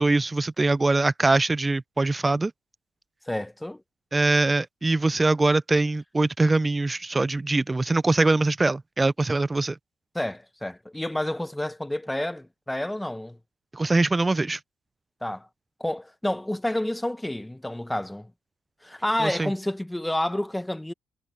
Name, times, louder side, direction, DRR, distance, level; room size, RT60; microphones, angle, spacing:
voice 1, 0.0-2.5 4.1-9.8 13.7-14.6 19.2-19.5, right 2 dB, 20° right, 0.5 m, -23 dB
voice 2, 3.3-3.8 10.1-13.4 15.2-15.5 15.8-18.3 18.8-20.9, left 1 dB, 5° left, 1.1 m, -29 dB
cardioid pair, 90°, 0 cm